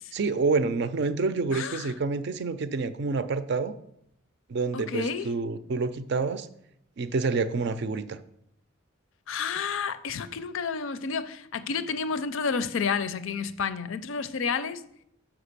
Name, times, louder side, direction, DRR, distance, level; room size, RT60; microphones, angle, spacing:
voice 1, 0.1-3.7 4.5-6.5 7.0-8.2, right 4 dB, 55° right, 12 dB, 0.4 m, -28 dB
voice 2, 1.5-1.9 4.7-5.3 9.3-14.8, left 5 dB, 70° left, 13 dB, 0.5 m, -30 dB
6.0 x 4.9 x 6.6 m, 0.75 s
head